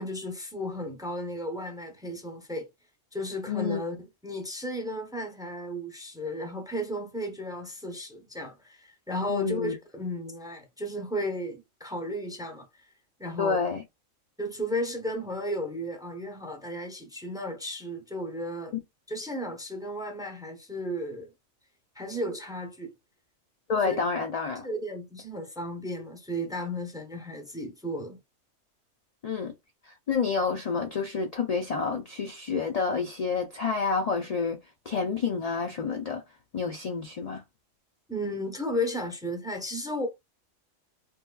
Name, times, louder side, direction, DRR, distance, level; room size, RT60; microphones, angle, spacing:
voice 1, 0.0-2.7 3.1-4.0 4.2-12.7 13.2-13.6 14.4-18.8 19.1-21.3 22.0-22.9 23.9-24.0 24.6-28.2 38.1-40.1, equal, 5° right, 0.7 m, -34 dB
voice 2, 3.5-3.8 9.3-9.7 13.4-13.8 23.7-24.7 29.2-29.5 29.8-34.6 34.9-36.2 36.5-37.4, left 5 dB, 55° left, 0.4 m, -29 dB
3.4 x 3.0 x 2.3 m
omnidirectional pair, 1.3 m